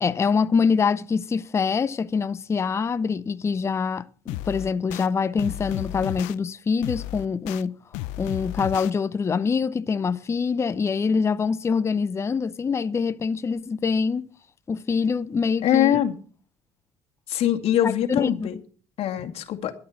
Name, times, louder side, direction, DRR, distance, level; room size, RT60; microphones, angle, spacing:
voice 1, 0.0-7.7 8.2-14.3 14.7-16.0 17.8-18.5, left 5 dB, 20° left, 0.6 m, -25 dB
sound 1, 4.3-5.1 5.4-6.4 6.8-7.6 7.9-8.9, left 16 dB, 80° left, 0.6 m, -33 dB
voice 2, 15.6-16.1 17.3-18.6 19.0-19.7, left 11 dB, 55° left, 2.1 m, -23 dB
11.5 x 8.8 x 7.1 m
supercardioid pair, 100°, 12 cm